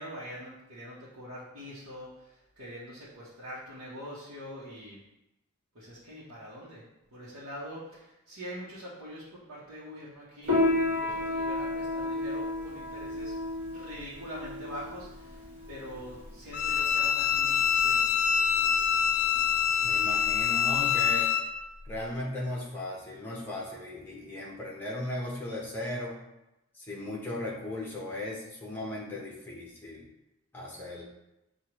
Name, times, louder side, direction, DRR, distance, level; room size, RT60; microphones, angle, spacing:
voice 1, 0.0-5.0 5.7-6.8 7.1-13.4 13.6-18.2, equal, 80° right, -10 dB, 1.0 m, -44 dB
Piano, 10.4-20.4, left 2 dB, 45° right, 1.4 m, -32 dB
Bowed string instrument, 16.5-21.4, left 8 dB, 85° left, 0.4 m, -25 dB
voice 2, 19.8-21.3 21.9-26.2 26.8-30.0 30.5-31.0, left 1 dB, 10° left, -5 dB, 0.8 m, -37 dB
6.2 x 2.4 x 3.0 m, 0.92 s
head